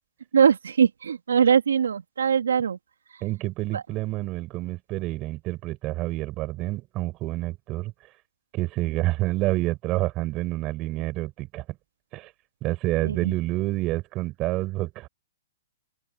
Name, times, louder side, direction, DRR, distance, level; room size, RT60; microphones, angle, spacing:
voice 1, 0.3-2.8 3.7-3.8 13.0-13.3, right 7 dB, 85° right, 2.7 m, -21 dB
voice 2, 3.2-7.9 8.5-11.6 12.1-12.3 12.6-15.1, right 18 dB, 30° right, 6.0 m, -28 dB
open air
hypercardioid pair, 135°, 0 cm